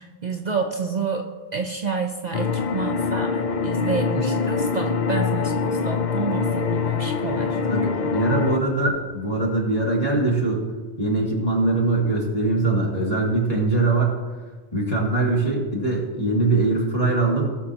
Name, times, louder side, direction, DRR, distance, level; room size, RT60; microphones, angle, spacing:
voice 1, 0.0-7.6, right 4 dB, 50° right, 3 dB, 0.7 m, -29 dB
sound 1, 2.3-8.6, left 5 dB, 55° left, 0.6 m, -24 dB
voice 2, 7.7-10.6 11.0-14.2 14.7-17.4, right 2 dB, 35° left, -4 dB, 2.6 m, -22 dB
18.0 x 6.3 x 2.9 m, 1.3 s
omnidirectional pair, 1.1 m